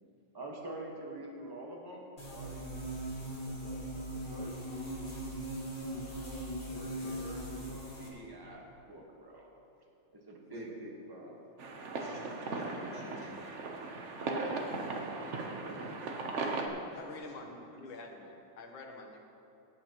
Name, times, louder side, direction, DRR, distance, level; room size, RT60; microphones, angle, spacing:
voice 1, 0.3-2.7 3.4-4.7 6.0-9.5 10.3-11.4 14.2-16.2, right 1 dB, 15° right, -1 dB, 1.1 m, -46 dB
sound 1, 2.2-8.1, right 1 dB, 25° left, 1.8 m, -40 dB
sound 2, 11.6-16.7, right 3 dB, 55° right, 0.9 m, -38 dB
voice 2, 12.0-13.6 16.9-17.4, left 1 dB, 55° left, -7 dB, 3.3 m, -50 dB
voice 3, 17.0-19.2, left 3 dB, 80° left, 1 dB, 1.9 m, -47 dB
17.0 x 8.7 x 3.0 m, 2.9 s
omnidirectional pair, 2.1 m